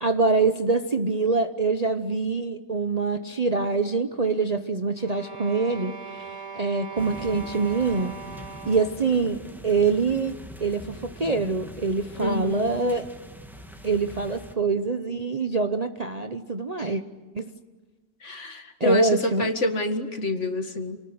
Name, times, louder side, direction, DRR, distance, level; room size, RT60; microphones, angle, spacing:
voice 1, 0.0-6.3 6.6-8.1 8.7-10.3 10.6-13.1 13.8-17.0 17.3-17.5 18.8-19.5, right 4 dB, 30° right, 8 dB, 0.8 m, -25 dB
sound 1, 5.0-9.1, right 5 dB, 55° right, 2.3 m, -40 dB
sound 2, 7.0-14.5, equal, ahead, 2.0 m, -43 dB
voice 2, 12.2-12.7 16.8-16.9 18.2-21.0, left 1 dB, 50° left, 7 dB, 2.3 m, -27 dB
28.5 x 20.0 x 9.5 m, 1.3 s
omnidirectional pair, 1.6 m